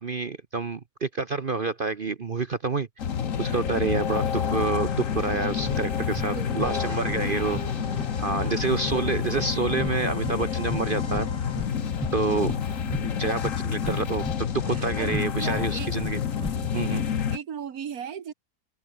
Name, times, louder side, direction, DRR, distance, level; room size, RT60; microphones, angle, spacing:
voice 1, 0.0-2.9 3.4-7.6 8.2-11.3 12.1-12.6 13.0-16.2 16.7-17.0, right 4 dB, 40° right, 0.9 m, -28 dB
sound 1, 3.0-11.6, left 4 dB, 75° left, 3.8 m, -41 dB
sound 2, 3.0-17.4, left 8 dB, 50° left, 1.5 m, -29 dB
sound 3, 5.5-17.1, equal, 5° left, 2.7 m, -38 dB
voice 2, 6.3-7.0 7.3-7.8 8.4-9.3 12.2-12.6 14.7-15.9 17.3-18.3, right 8 dB, 60° right, 1.7 m, -38 dB
omnidirectional pair, 1.8 m